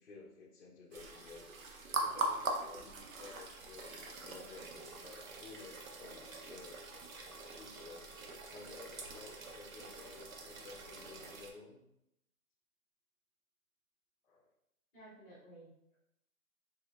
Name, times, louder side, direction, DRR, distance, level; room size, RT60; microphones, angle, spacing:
voice 1, 0.0-1.5 1.9-6.8 7.5-11.8 14.2-14.5, left 4 dB, 50° left, -2 dB, 0.6 m, -54 dB
sound 1, 0.9-11.5, right 2 dB, 65° right, 0.7 m, -42 dB
voice 2, 14.9-16.0, right 1 dB, 5° left, -15 dB, 0.8 m, -56 dB
3.5 x 2.9 x 2.3 m, 0.82 s
hypercardioid pair, 160°, 45 cm